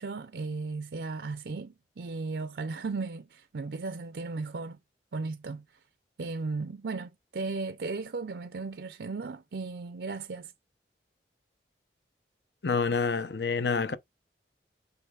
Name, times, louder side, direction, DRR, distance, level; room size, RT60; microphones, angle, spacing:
voice 1, 0.0-4.8 5.1-5.6 6.2-10.5, right 3 dB, 75° right, 0.5 m, -36 dB
voice 2, 12.6-14.0, left 5 dB, 75° left, 0.7 m, -27 dB
6.4 x 6.2 x 2.4 m
head